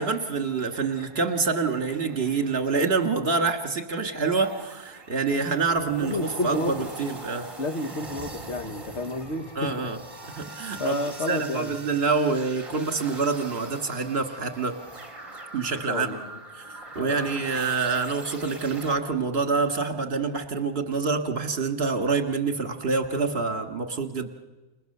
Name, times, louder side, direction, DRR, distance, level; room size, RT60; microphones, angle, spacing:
voice 1, 0.0-7.5 9.6-10.0 10.3-11.0 11.3-14.7 15.5-16.1 17.0-24.3, right 4 dB, 40° right, 2.2 m, -26 dB
sound 1, 0.7-19.0, right 2 dB, 20° right, 2.4 m, -42 dB
voice 2, 6.0-6.9 7.6-9.9 10.8-11.8 15.7-16.4 17.0-17.2, left 2 dB, 50° left, 1.5 m, -31 dB
29.5 x 28.5 x 6.8 m
omnidirectional pair, 1.6 m